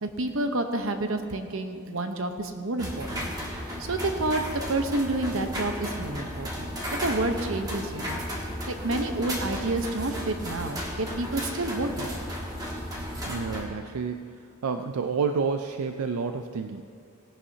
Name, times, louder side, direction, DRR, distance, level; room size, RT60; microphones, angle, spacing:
voice 1, 0.0-12.1, right 2 dB, 65° right, 6 dB, 0.9 m, -30 dB
sound 1, 2.8-13.6, equal, 15° right, 1.4 m, -34 dB
voice 2, 13.3-16.8, right 5 dB, 85° right, 7 dB, 0.4 m, -30 dB
17.5 x 11.0 x 2.8 m, 2.5 s
head